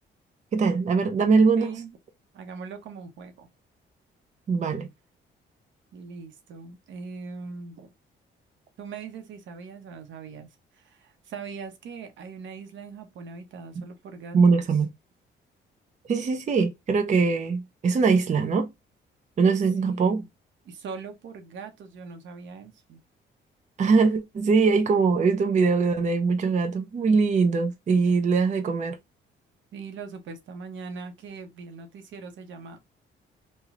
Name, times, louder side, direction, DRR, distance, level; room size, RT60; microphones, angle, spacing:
voice 1, 0.5-1.7 4.5-4.9 13.8-13.9 14.3-14.9 16.1-18.7 19.4-20.2 23.8-29.0, right 4 dB, 35° right, 0.6 m, -22 dB
voice 2, 1.6-1.9 2.3-3.5 5.9-7.9 8.8-14.6 19.8-20.3 20.6-23.0 29.7-32.8, right 5 dB, 75° right, 0.9 m, -41 dB
3.1 x 2.2 x 3.6 m
cardioid pair, 90°, 20 cm